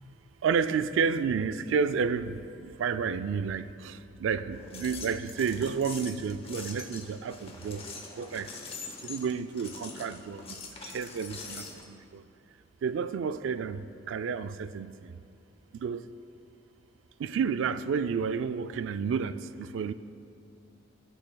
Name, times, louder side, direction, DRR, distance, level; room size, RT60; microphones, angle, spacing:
voice 1, 0.4-7.8 8.2-8.5 9.0-10.5 10.8-12.2 12.8-15.2 15.7-16.1 17.2-19.9, right 6 dB, 75° right, 13 dB, 0.3 m, -31 dB
sound 1, 4.5-11.8, left 4 dB, 30° left, 0.9 m, -44 dB
18.0 x 6.3 x 2.3 m, 2.5 s
head